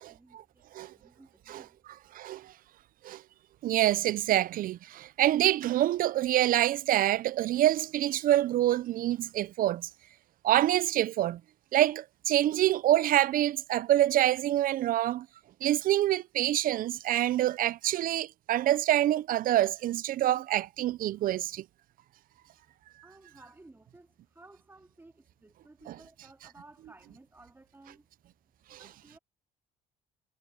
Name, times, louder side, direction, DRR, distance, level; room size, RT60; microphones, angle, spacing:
voice 1, 0.0-1.8 23.0-28.1 28.7-29.2, right 2 dB, 15° right, 3.0 m, -56 dB
voice 2, 2.1-2.5 3.0-3.2 3.6-9.9 10.4-11.4 11.7-15.3 15.6-21.6 25.9-26.0 28.7-28.8, right 13 dB, 55° right, 0.5 m, -26 dB
cardioid pair, 110°, 17 cm